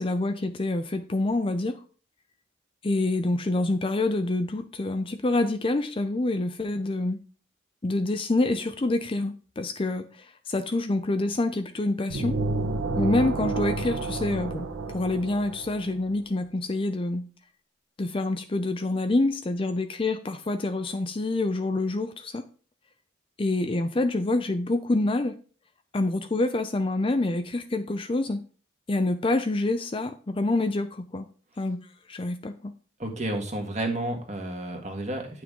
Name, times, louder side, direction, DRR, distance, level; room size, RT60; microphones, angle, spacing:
voice 1, 0.0-1.8 2.8-7.2 7.8-12.4 13.0-17.2 18.0-22.4 23.4-25.4 25.9-28.4 28.9-31.3 31.6-31.8 32.1-32.7, left 2 dB, 25° left, 8 dB, 0.5 m, -27 dB
sound 1, 12.1-15.9, right 3 dB, 85° right, 0.9 m, -30 dB
voice 2, 33.0-35.4, right 1 dB, 35° right, 3 dB, 1.7 m, -31 dB
9.7 x 6.0 x 3.7 m, 0.40 s
head